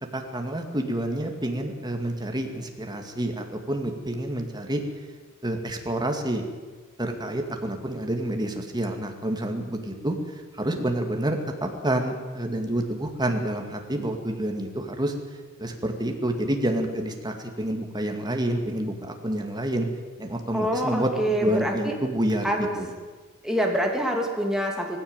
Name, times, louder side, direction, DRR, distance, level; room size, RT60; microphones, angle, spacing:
voice 1, 0.1-4.8 5.4-6.4 7.0-15.1 15.6-19.9 20.2-22.5 22.8-22.9, right 1 dB, 20° right, 4 dB, 2.3 m, -28 dB
voice 2, 20.5-21.9 22.4-22.7 23.4-25.0, equal, 5° right, 1 dB, 2.9 m, -26 dB
18.0 x 16.0 x 9.1 m, 1.4 s
head